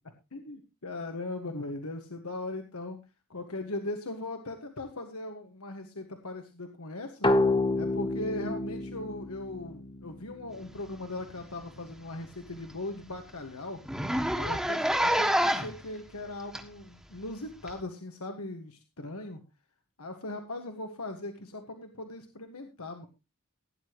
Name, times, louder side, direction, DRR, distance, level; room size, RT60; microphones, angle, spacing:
voice 1, 0.3-3.0 3.3-7.3 7.8-13.8 14.3-19.4 20.0-23.1, left 2 dB, 80° left, 5 dB, 1.6 m, -39 dB
sound 1, 7.2-10.7, left 2 dB, 20° left, 1.1 m, -29 dB
Zipper (clothing), 11.2-11.4 11.7-11.8 12.2-12.3 12.7-12.8 13.0-13.2 13.8-15.8 16.5-16.6 17.7-17.8, equal, 5° right, 1.5 m, -27 dB
17.0 x 9.9 x 3.0 m, 0.26 s
head